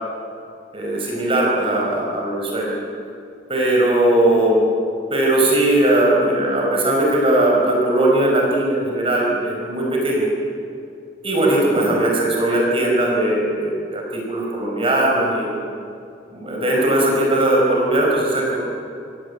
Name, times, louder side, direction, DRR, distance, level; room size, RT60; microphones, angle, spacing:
voice 1, 0.7-2.7 3.5-4.7 5.1-10.3 11.2-15.6 16.3-18.6, right 1 dB, 30° right, -2 dB, 5.4 m, -19 dB
27.0 x 17.5 x 8.6 m, 2.4 s
head